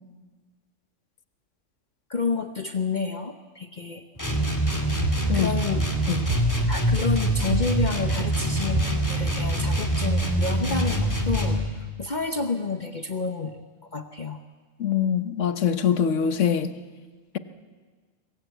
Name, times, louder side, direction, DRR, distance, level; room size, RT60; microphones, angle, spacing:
voice 1, 2.1-4.0 5.3-5.9 6.7-14.4, left 4 dB, 40° left, 7 dB, 1.0 m, -30 dB
sound 1, 4.2-11.7, right 1 dB, 15° left, 2.7 m, -24 dB
sound 2, 5.0-5.7 6.3-6.9 7.5-8.2 8.7-9.4, right 2 dB, 65° right, 2.5 m, -32 dB
voice 2, 14.8-16.7, left 8 dB, 90° left, 11 dB, 1.4 m, -23 dB
25.0 x 21.0 x 8.2 m, 1.5 s
omnidirectional pair, 1.2 m